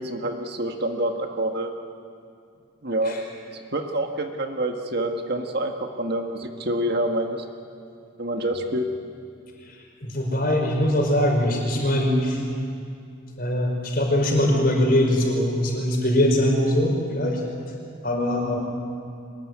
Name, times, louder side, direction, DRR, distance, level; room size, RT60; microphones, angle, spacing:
voice 1, 0.0-1.7 2.8-3.2 3.5-7.4 8.2-8.9, right 1 dB, 50° right, 4 dB, 1.6 m, -27 dB
voice 2, 9.7-12.4 13.4-17.4 18.0-18.6, left 1 dB, 45° left, 1 dB, 5.1 m, -22 dB
24.0 x 20.5 x 9.5 m, 2.5 s
head